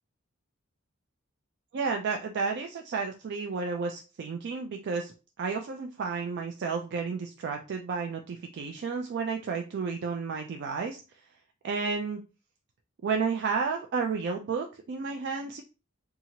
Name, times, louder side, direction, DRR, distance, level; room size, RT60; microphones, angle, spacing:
voice 1, 1.7-11.0 11.6-12.2 13.0-15.6, right 5 dB, 50° right, 3 dB, 0.3 m, -32 dB
2.8 x 2.4 x 2.7 m, 0.32 s
head